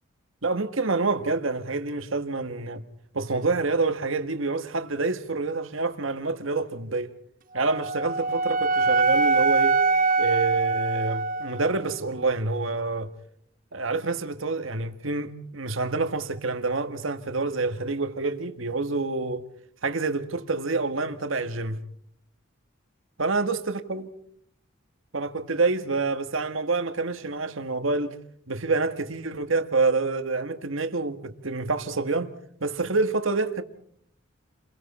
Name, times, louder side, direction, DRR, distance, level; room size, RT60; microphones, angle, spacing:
voice 1, 0.4-2.8 3.1-7.1 7.5-9.8 10.2-13.1 13.7-19.4 19.8-21.8 23.2-24.1 25.1-28.1 28.5-32.3 32.6-33.6, right 3 dB, 75° right, 1.7 m, -27 dB
Wind instrument woodwind instrument, 7.6-11.8, right 4 dB, 40° right, 1.3 m, -23 dB
29.5 x 23.0 x 4.3 m
head